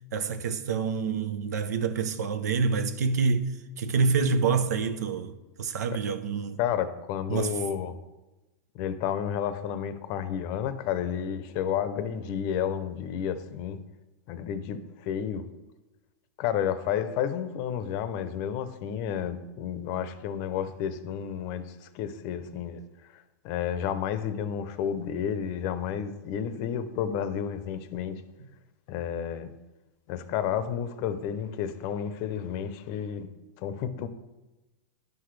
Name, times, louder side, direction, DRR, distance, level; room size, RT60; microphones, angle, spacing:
voice 1, 0.1-3.5 3.8-5.3 5.6-6.6 7.3-7.5, right 5 dB, 90° right, 0.7 m, -27 dB
voice 2, 6.6-7.9 8.7-13.8 14.3-15.4 16.4-22.8 23.1-28.2 28.9-29.5 30.1-33.3 33.6-34.1, left 9 dB, 40° left, 0.6 m, -31 dB
11.0 x 5.9 x 3.2 m
supercardioid pair, 150°, 9 cm